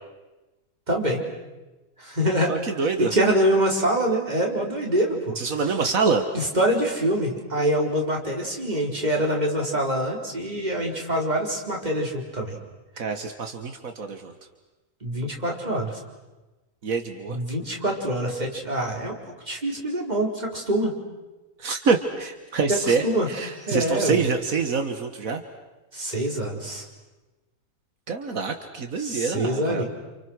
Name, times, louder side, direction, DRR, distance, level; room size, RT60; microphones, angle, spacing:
voice 1, 0.9-1.2 2.0-2.5 3.0-5.3 6.5-12.6 15.0-16.0 17.3-19.2 19.5-21.0 23.0-23.3 23.6-24.2 25.9-26.8 29.0-29.8, right 1 dB, 30° right, -1 dB, 4.5 m, -25 dB
voice 2, 2.5-3.1 5.4-6.3 13.0-14.3 16.8-17.4 21.6-25.4 28.1-29.8, right 5 dB, 80° right, 6 dB, 2.0 m, -26 dB
29.5 x 29.0 x 6.4 m, 1.1 s
omnidirectional pair, 1.4 m